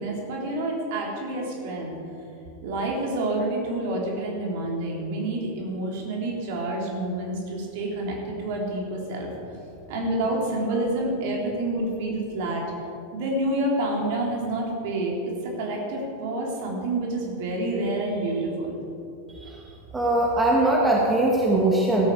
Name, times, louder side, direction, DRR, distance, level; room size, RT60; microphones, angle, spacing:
voice 1, 0.0-2.0 2.6-9.3 9.9-12.6 13.1-15.1 15.6-18.8, right 1 dB, 50° right, -2 dB, 3.7 m, -28 dB
voice 2, 19.3-19.7 19.9-22.1, right 2 dB, 10° right, -2 dB, 2.0 m, -21 dB
16.5 x 13.0 x 5.0 m, 2.7 s
figure-of-eight pair, 90°, 0 cm